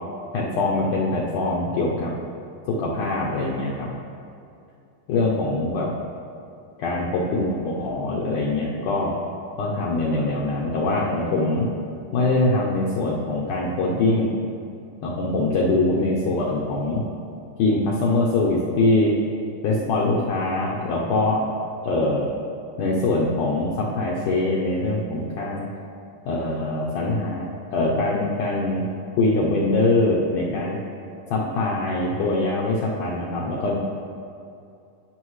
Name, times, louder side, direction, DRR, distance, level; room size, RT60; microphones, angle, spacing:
voice 1, 0.3-2.2 2.7-3.9 5.1-5.9 6.8-9.1 9.6-11.7 12.1-14.3 15.0-17.0 17.6-19.1 19.6-21.4 21.8-22.3 22.8-25.7 26.3-27.5 27.7-28.8 29.2-30.8 31.3-33.8, left 2 dB, 75° left, -4 dB, 1.9 m, -23 dB
16.0 x 6.4 x 3.2 m, 2.6 s
omnidirectional pair, 4.6 m